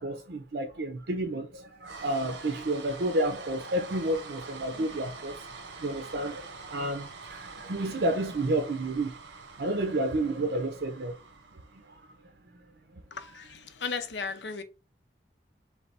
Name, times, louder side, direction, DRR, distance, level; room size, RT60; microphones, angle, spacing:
voice 1, 0.0-5.4 5.8-9.2 9.6-11.2 11.8-12.0, right 1 dB, 70° right, 0.6 m, -30 dB
sound 1, 1.8-12.1, right 4 dB, 90° right, 0.9 m, -45 dB
voice 2, 13.1-14.6, left 5 dB, 80° left, 0.6 m, -35 dB
3.3 x 3.2 x 4.1 m
head